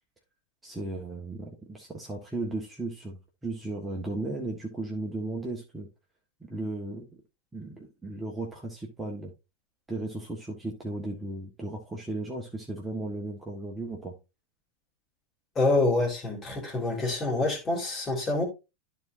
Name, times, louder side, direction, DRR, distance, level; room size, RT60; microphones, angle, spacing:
voice 1, 0.6-5.9 6.4-7.0 7.5-9.3 9.9-14.1, right 2 dB, 10° right, 1.7 m, -35 dB
voice 2, 15.5-18.5, left 2 dB, 25° left, 3.2 m, -26 dB
13.0 x 4.4 x 2.7 m
figure-of-eight pair, 90°, 0 cm